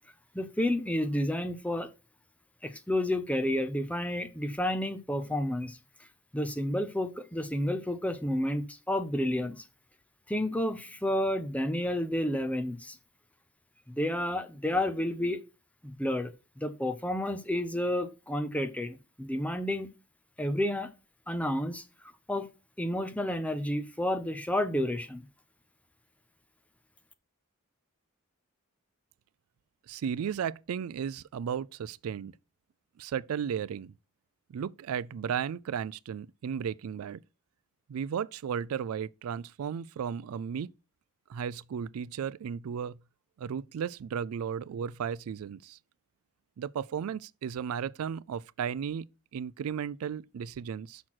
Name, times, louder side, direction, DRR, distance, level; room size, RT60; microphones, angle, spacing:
voice 1, 0.3-1.9 2.6-5.8 6.3-9.6 10.3-13.0 13.9-15.4 15.8-16.3 16.6-19.9 20.4-20.9 21.3-21.8 22.3-22.5 22.8-25.2, left 1 dB, 5° left, 0.7 m, -30 dB
voice 2, 29.9-32.3 33.0-33.9 34.5-37.2 37.9-40.7 41.3-43.0 43.4-45.8 46.6-49.1 49.3-51.0, right 7 dB, 85° right, 0.3 m, -34 dB
6.3 x 6.0 x 5.9 m
head